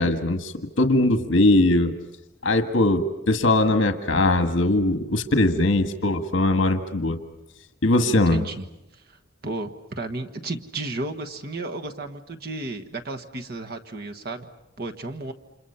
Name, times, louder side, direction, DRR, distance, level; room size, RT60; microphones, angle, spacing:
voice 1, 0.0-1.9 2.4-7.2 7.8-8.4, left 2 dB, 70° left, 6 dB, 1.7 m, -20 dB
voice 2, 8.0-8.6 8.9-9.2 9.4-14.5 14.8-15.3, right 2 dB, 50° right, 4 dB, 1.4 m, -33 dB
29.5 x 27.5 x 5.7 m, 0.91 s
head